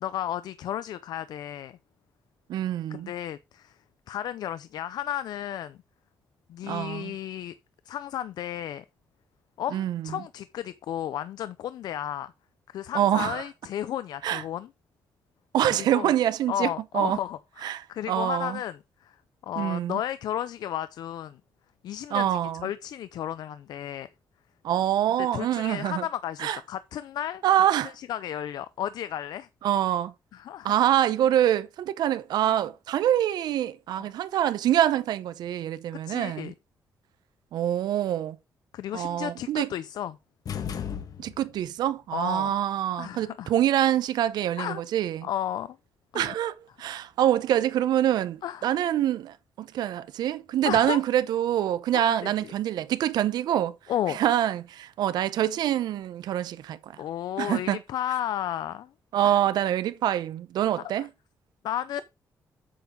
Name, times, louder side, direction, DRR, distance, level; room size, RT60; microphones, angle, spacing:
voice 1, 0.0-1.8 2.9-3.8 4.1-5.8 6.5-7.5 7.9-8.8 9.6-12.3 12.7-14.7 15.7-16.1 16.5-19.2 19.4-21.4 21.8-24.1 25.3-29.5 30.3-30.7 34.0-34.1 36.1-36.5 38.7-40.2 42.1-42.5 43.0-43.6 44.6-44.8 45.2-45.8 46.1-46.4 48.4-48.7 50.6-51.0 51.9-52.5 53.9-54.2 57.0-58.9 59.2-59.4 61.0-61.1 61.6-62.0, left 11 dB, 80° left, 0.5 m, -33 dB
voice 2, 2.5-3.1 6.7-7.1 9.7-10.2 12.9-13.4 14.2-14.4 15.5-17.2 17.6-18.6 19.6-20.0 22.1-22.7 24.6-26.0 26.4-26.6 27.4-27.9 29.6-30.1 30.6-36.5 37.5-38.4 38.9-39.7 41.2-45.3 46.1-53.7 54.1-56.8 57.4-57.8 59.1-61.1, right 11 dB, 85° right, 0.9 m, -25 dB
sound 1, 40.5-41.7, left 8 dB, 65° left, 1.5 m, -35 dB
8.6 x 7.1 x 3.8 m
cardioid pair, 80°, 7 cm